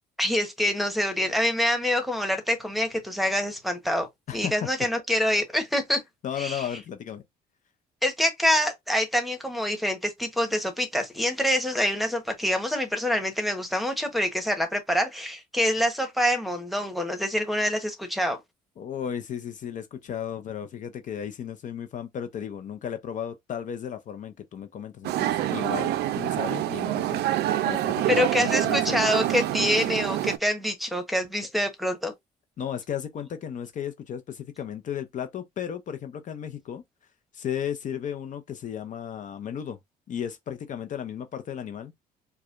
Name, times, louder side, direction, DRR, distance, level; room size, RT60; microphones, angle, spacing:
voice 1, 0.2-4.1 4.3-6.0 6.4-6.6 8.0-18.4 28.1-32.1, left 1 dB, ahead, 1.0 m, -26 dB
voice 2, 4.3-4.7 6.2-7.2 18.8-27.2 27.6-29.0 32.6-36.8 37.3-39.8 40.1-41.9, left 9 dB, 50° left, 0.6 m, -34 dB
sound 1, 25.0-30.4, right 13 dB, 75° right, 0.5 m, -26 dB
4.7 x 2.2 x 2.5 m
cardioid pair, 110°, 17 cm